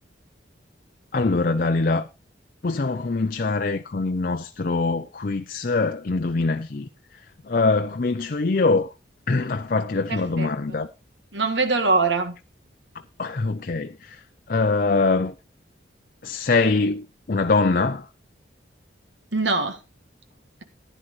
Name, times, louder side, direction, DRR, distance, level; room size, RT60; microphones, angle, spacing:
voice 1, 1.1-2.1 2.6-6.9 7.5-8.9 9.3-10.9 13.2-14.2 14.5-15.3 16.2-18.1, left 3 dB, 45° left, 0.5 m, -23 dB
voice 2, 10.1-10.8 11.3-12.3 19.3-19.8, right 3 dB, 70° right, 1.8 m, -23 dB
15.0 x 10.0 x 3.2 m
head